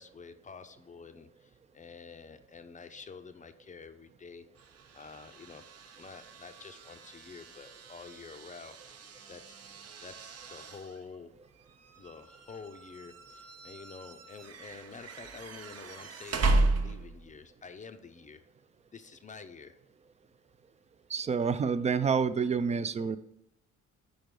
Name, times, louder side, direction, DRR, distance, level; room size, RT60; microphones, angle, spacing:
voice 1, 0.0-4.5 4.9-5.6 5.9-8.8 9.3-9.5 10.0-11.5 12.0-18.4 18.9-19.8, left 5 dB, 25° left, 0.5 m, -48 dB
sound 1, 4.6-17.4, right 2 dB, 55° right, 0.8 m, -36 dB
voice 2, 21.1-23.2, right 6 dB, 25° right, 0.4 m, -28 dB
5.1 x 4.8 x 5.2 m
cardioid pair, 90°, 30 cm